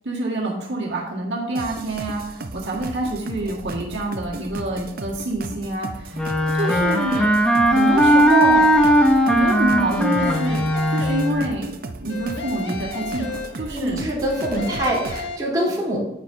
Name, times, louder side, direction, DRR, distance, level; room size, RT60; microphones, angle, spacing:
voice 1, 0.1-7.3 7.7-8.7 9.3-10.6 10.9-11.7 12.0-13.3 13.6-14.0, right 2 dB, 75° right, -3 dB, 1.8 m, -26 dB
sound 1, 1.6-15.3, right 2 dB, 55° right, 0.7 m, -35 dB
Wind instrument woodwind instrument, 6.1-11.5, equal, 5° left, 0.8 m, -18 dB
sound 2, 6.6-7.2 7.7-9.6 9.9-11.7 12.1-13.9 14.3-15.4, left 4 dB, 90° left, 1.3 m, -33 dB
voice 2, 13.7-16.0, right 1 dB, 25° right, -6 dB, 3.3 m, -24 dB
9.4 x 8.9 x 2.7 m, 0.85 s
head